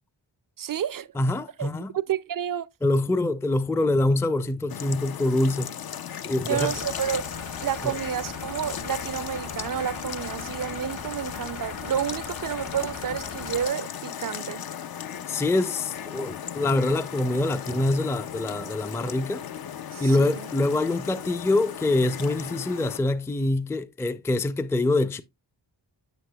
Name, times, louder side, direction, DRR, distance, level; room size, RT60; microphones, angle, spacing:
voice 1, 0.6-1.1 1.6-2.7 6.5-7.3 7.6-14.6 19.9-20.5, right 9 dB, 50° right, 0.5 m, -30 dB
voice 2, 1.2-1.9 2.8-5.7 6.2-6.7 7.8-7.9 15.3-19.4 20.0-25.2, left 2 dB, 5° left, 0.4 m, -25 dB
sound 1, 4.7-23.0, left 9 dB, 55° left, 0.5 m, -37 dB
sound 2, 6.5-13.7, left 3 dB, 85° left, 4.5 m, -40 dB
8.1 x 7.2 x 2.2 m
wide cardioid pair, 75°, 45 cm